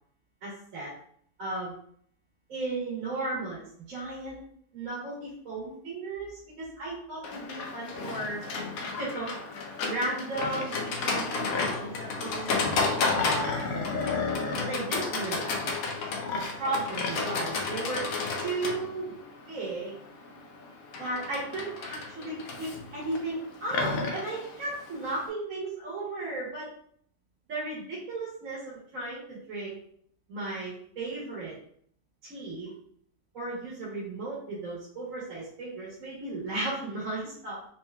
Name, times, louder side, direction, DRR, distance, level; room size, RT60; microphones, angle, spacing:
voice 1, 0.4-0.9 1.4-1.7 2.5-4.4 4.7-8.4 9.0-9.3 9.8-12.6 13.4-13.6 14.6-15.8 16.3-18.0 18.4-19.1 19.5-20.0 21.0-26.7 27.5-29.8 30.3-31.5 32.2-32.7 33.3-37.6, right 2 dB, 65° right, -7 dB, 1.4 m, -35 dB
Livestock farm animals working animals, 7.2-25.3, left 4 dB, 75° left, 1.0 m, -32 dB
4.3 x 2.8 x 2.2 m, 0.64 s
omnidirectional pair, 1.5 m